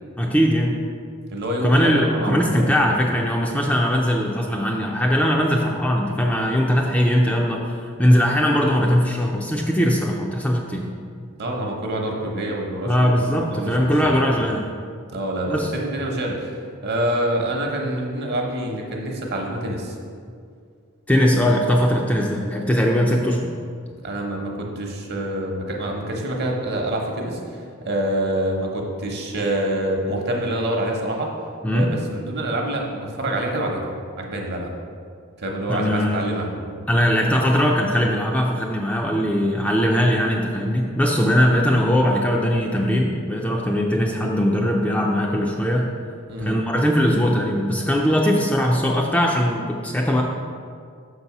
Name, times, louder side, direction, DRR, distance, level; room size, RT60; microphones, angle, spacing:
voice 1, 0.2-0.8 1.6-10.9 12.9-14.6 15.5-15.7 21.1-23.5 31.6-31.9 35.7-36.2 36.9-45.9 46.4-50.2, equal, 5° left, -1 dB, 0.4 m, -20 dB
voice 2, 1.3-2.7 11.4-14.2 15.1-20.0 24.0-31.3 31.7-33.8 34.2-34.7 35.4-36.8 46.3-46.6, right 1 dB, 50° right, 1 dB, 0.9 m, -26 dB
6.0 x 4.1 x 5.9 m, 2.2 s
head